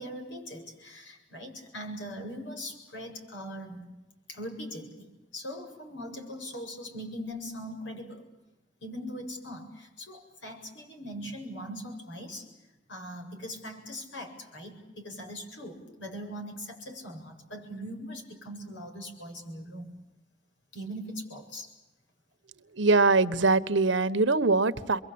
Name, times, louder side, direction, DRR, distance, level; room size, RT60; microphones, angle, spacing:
voice 1, 0.0-3.9 4.3-8.2 8.8-12.5 12.9-19.9 20.7-21.7, equal, 80° left, 3 dB, 7.7 m, -41 dB
voice 2, 22.7-25.0, right 3 dB, 85° right, 12 dB, 1.3 m, -23 dB
29.0 x 23.5 x 8.8 m, 1.0 s
head